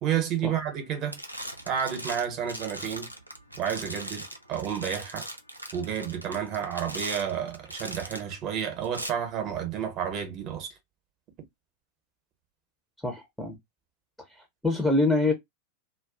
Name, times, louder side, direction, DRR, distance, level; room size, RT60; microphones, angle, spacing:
voice 1, 0.0-1.2 1.7-3.1 3.6-5.3 5.7-10.8, right 8 dB, 35° right, 0.8 m, -31 dB
sound 1, 0.6-0.8 1.1-8.3 8.8-9.1, right 1 dB, 90° right, 0.4 m, -40 dB
voice 2, 13.0-13.6 14.4-15.3, left 2 dB, ahead, 0.6 m, -25 dB
2.3 x 2.2 x 2.4 m
figure-of-eight pair, 90°, 0 cm